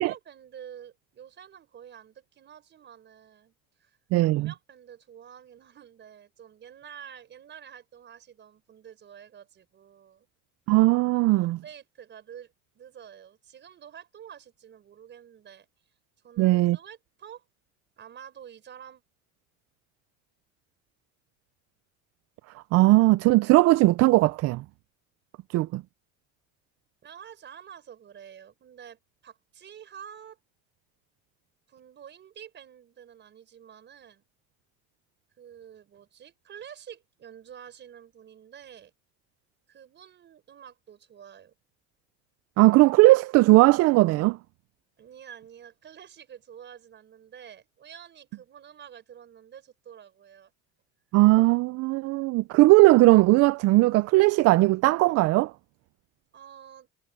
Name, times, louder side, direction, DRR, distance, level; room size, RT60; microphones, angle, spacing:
voice 1, 0.0-3.5 3.8-4.0 4.3-10.3 11.4-15.7 16.2-17.4 18.0-19.0 27.0-30.4 31.7-34.2 35.4-38.9 39.7-41.5 45.0-50.5 56.3-56.9, right 9 dB, 35° right, 5.1 m, -48 dB
voice 2, 4.1-4.5 10.7-11.6 16.4-16.8 22.7-24.6 25.5-25.8 42.6-44.4 51.1-55.5, right 20 dB, 55° right, 0.4 m, -19 dB
cardioid pair, 145°, 30 cm